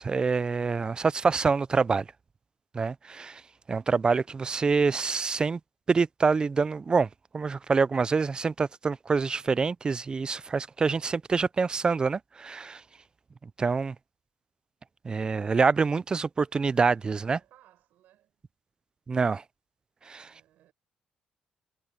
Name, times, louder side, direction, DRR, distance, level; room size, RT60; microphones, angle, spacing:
voice 1, 0.0-2.1 2.7-3.4 3.7-5.6 5.9-7.1 7.3-12.8 13.6-13.9 15.0-17.4 19.1-19.4 20.1-20.3, right 4 dB, 30° right, 0.4 m, -26 dB
voice 2, 17.0-18.4 20.2-20.7, right 13 dB, 80° right, 7.1 m, -61 dB
cardioid pair, 90°, 3 cm